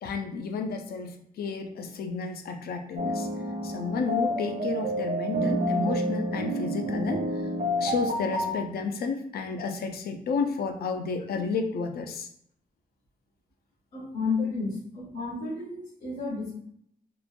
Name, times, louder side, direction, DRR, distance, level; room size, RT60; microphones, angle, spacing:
voice 1, 0.0-3.3 3.6-7.4 7.8-12.3, left 4 dB, 80° left, 5 dB, 0.4 m, -31 dB
sound 1, 3.0-8.5, equal, 50° right, 0.6 m, -29 dB
voice 2, 13.9-16.5, left 4 dB, 50° left, -7 dB, 0.8 m, -31 dB
2.9 x 2.1 x 2.4 m, 0.67 s
wide cardioid pair, 160°, 16 cm